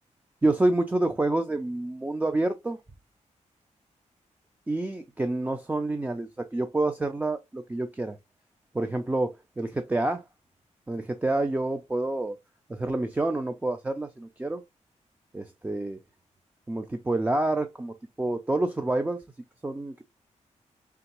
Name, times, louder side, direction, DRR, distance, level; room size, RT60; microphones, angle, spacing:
voice 1, 0.4-2.8 4.7-8.2 8.7-10.2 10.9-12.4 12.7-14.6 15.3-16.0 16.7-19.2 19.6-20.0, right 2 dB, 10° right, 0.4 m, -28 dB
3.8 x 3.4 x 2.9 m
wide cardioid pair, 125°, 13 cm